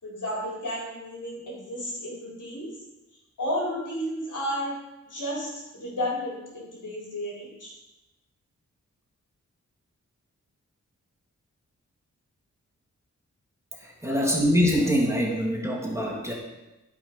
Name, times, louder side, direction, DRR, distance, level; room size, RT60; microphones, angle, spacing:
voice 1, 0.0-2.7 3.4-4.8 5.1-7.7 14.1-14.4, equal, 75° left, -4 dB, 4.0 m, -32 dB
voice 2, 13.7-16.3, equal, 10° right, -2 dB, 2.3 m, -24 dB
12.5 x 5.8 x 5.2 m, 0.99 s
wide cardioid pair, 70°, 31 cm